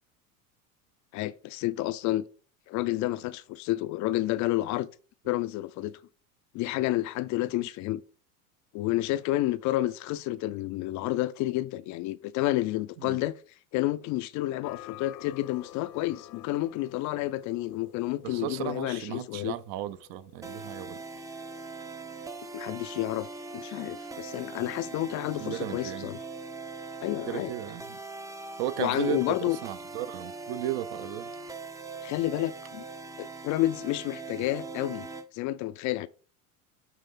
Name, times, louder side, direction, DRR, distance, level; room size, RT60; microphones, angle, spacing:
voice 1, 1.1-2.3 2.7-4.9 5.2-6.0 6.5-8.0 8.7-13.4 13.7-19.6 22.5-23.3 23.5-26.2 27.0-27.5 28.8-29.6 32.0-32.8 33.2-35.1 35.3-36.1, left 16 dB, 45° left, 0.4 m, -30 dB
sound 1, 14.6-20.6, left 14 dB, 85° left, 0.9 m, -50 dB
voice 2, 18.2-21.0 25.4-26.1 27.3-28.0 28.6-31.3, right 13 dB, 55° right, 0.7 m, -35 dB
sound 2, 20.4-35.3, right 3 dB, 10° right, 0.5 m, -41 dB
9.2 x 3.2 x 3.7 m
hypercardioid pair, 90°, 43 cm